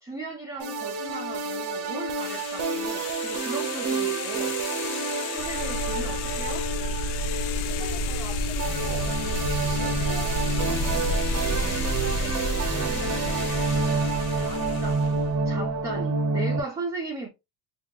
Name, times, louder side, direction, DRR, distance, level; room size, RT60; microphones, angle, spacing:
voice 1, 0.0-4.6 5.3-6.7 14.3-15.0 15.4-17.3, right 2 dB, 10° right, 0.6 m, -37 dB
sound 1, 0.6-16.6, right 3 dB, 35° right, 0.9 m, -29 dB
sound 2, 2.2-15.2, left 11 dB, 60° left, 0.6 m, -37 dB
sound 3, 5.4-16.0, right 1 dB, 85° left, 1.4 m, -31 dB
voice 2, 7.7-9.2 9.8-13.9, equal, 30° left, 1.5 m, -43 dB
2.8 x 2.5 x 3.6 m
cardioid pair, 150°, 45 cm